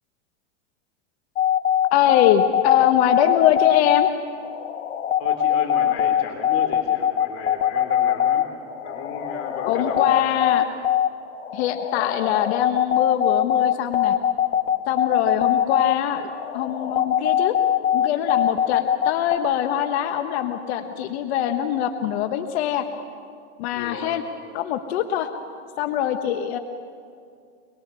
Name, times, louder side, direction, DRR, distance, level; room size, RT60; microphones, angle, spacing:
sound 1, 1.4-19.4, left 10 dB, 85° left, 1.9 m, -22 dB
voice 1, 1.9-4.1 9.7-10.6 11.5-14.1 14.9-17.5 17.9-22.9 23.6-24.2 24.5-25.3 25.8-26.6, left 10 dB, 60° left, 7 dB, 1.3 m, -23 dB
voice 2, 5.2-8.5 8.8-10.3 23.7-24.2, left 5 dB, 40° left, 3 dB, 3.4 m, -34 dB
25.0 x 22.0 x 6.9 m, 2.3 s
supercardioid pair, 130°, 37 cm